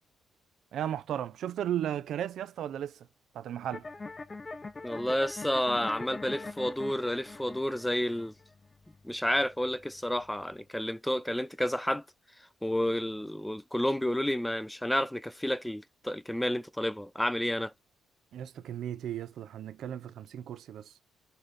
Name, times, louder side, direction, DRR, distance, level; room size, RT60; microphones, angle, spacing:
voice 1, 0.7-3.1 3.3-3.8 18.3-20.9, right 10 dB, 70° right, 0.8 m, -35 dB
sound 1, 3.7-10.6, left 3 dB, 30° left, 0.9 m, -43 dB
voice 2, 4.8-8.3 9.0-12.0 12.6-17.7, left 1 dB, 5° left, 0.5 m, -30 dB
5.5 x 4.0 x 5.0 m
cardioid pair, 90°, 0 cm